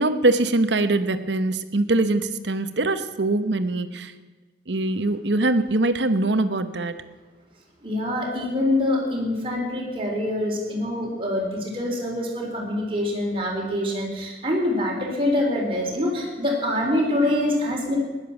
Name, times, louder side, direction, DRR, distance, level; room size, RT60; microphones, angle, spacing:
voice 1, 0.0-4.1 4.7-7.0, right 2 dB, 80° right, 11 dB, 1.0 m, -22 dB
voice 2, 7.8-18.0, left 1 dB, 30° right, -1 dB, 3.8 m, -25 dB
15.5 x 11.0 x 7.1 m, 1.3 s
head